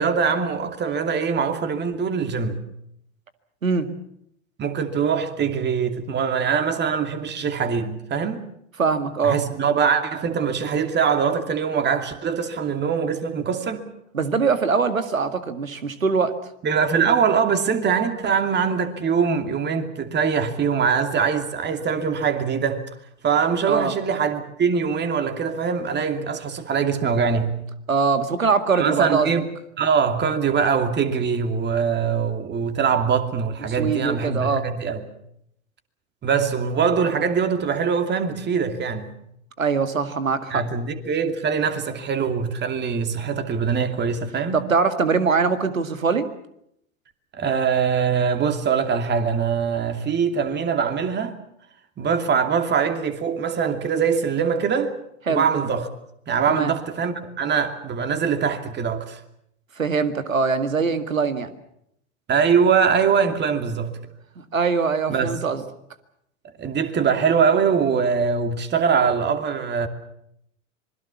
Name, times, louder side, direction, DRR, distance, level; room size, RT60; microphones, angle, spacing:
voice 1, 0.0-2.6 4.6-8.4 9.2-13.9 16.6-22.9 23.2-27.5 28.8-29.5 29.8-35.0 36.2-39.1 40.5-44.6 47.3-51.3 52.0-54.9 55.3-55.9 56.3-59.2 62.3-63.9 65.1-65.4 66.6-69.9, right 6 dB, 25° right, 2.7 m, -22 dB
voice 2, 8.8-9.4 14.1-16.3 23.7-23.9 27.9-29.3 33.6-34.6 39.6-40.6 44.5-46.3 55.3-55.4 56.5-56.7 59.8-61.5 64.4-65.6, right 5 dB, 90° right, 2.0 m, -22 dB
26.0 x 21.5 x 7.2 m
hypercardioid pair, 95°, 39 cm